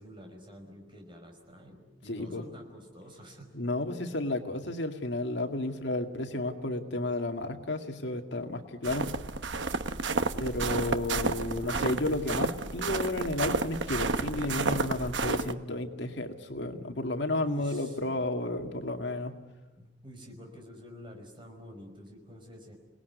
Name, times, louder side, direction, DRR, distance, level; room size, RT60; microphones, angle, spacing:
voice 1, 0.0-3.5 10.6-11.3 17.4-18.3 19.8-22.7, equal, 25° right, 3 dB, 5.4 m, -48 dB
voice 2, 2.1-2.4 3.5-9.1 10.4-19.3, left 2 dB, 65° left, 5 dB, 2.1 m, -32 dB
sound 1, 8.8-15.5, right 3 dB, 65° right, 1.0 m, -31 dB
29.0 x 19.5 x 9.5 m, 1.1 s
head